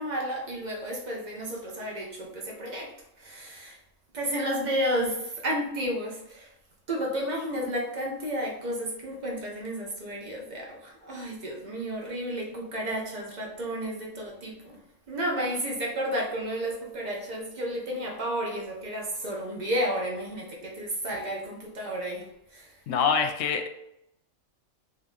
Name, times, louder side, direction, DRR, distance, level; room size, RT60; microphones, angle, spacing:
voice 1, 0.0-3.8 4.1-6.5 6.9-14.8 15.1-22.3 22.5-22.8, equal, 40° right, -1 dB, 0.9 m, -32 dB
voice 2, 22.9-23.7, left 6 dB, 75° left, 5 dB, 0.9 m, -25 dB
3.6 x 2.9 x 3.7 m, 0.82 s
omnidirectional pair, 1.4 m